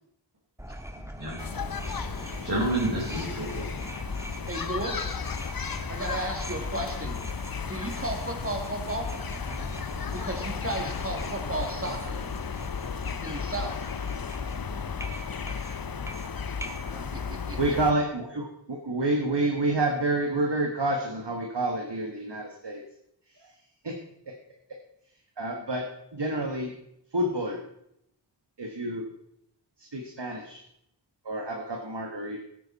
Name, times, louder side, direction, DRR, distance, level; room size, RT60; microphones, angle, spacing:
sound 1, 0.6-17.1, right 1 dB, 5° right, 1.5 m, -41 dB
sound 2, 1.4-17.9, left 6 dB, 55° left, 0.7 m, -34 dB
voice 1, 1.9-3.8, right 1 dB, 50° right, -8 dB, 4.3 m, -30 dB
voice 2, 4.5-5.2 5.9-7.2 7.7-9.1 10.1-12.2 13.2-13.9 16.5-16.6 17.1-17.6, right 2 dB, 30° right, 3 dB, 2.5 m, -34 dB
voice 3, 17.6-22.8 23.4-23.5 23.8-23.9 25.4-25.8 26.1-26.7 27.1-27.6 28.6-29.0 29.8-30.6 31.2-32.4, right 2 dB, 75° right, 1 dB, 1.5 m, -28 dB
15.5 x 9.3 x 4.1 m, 0.77 s
wide cardioid pair, 45°, 42 cm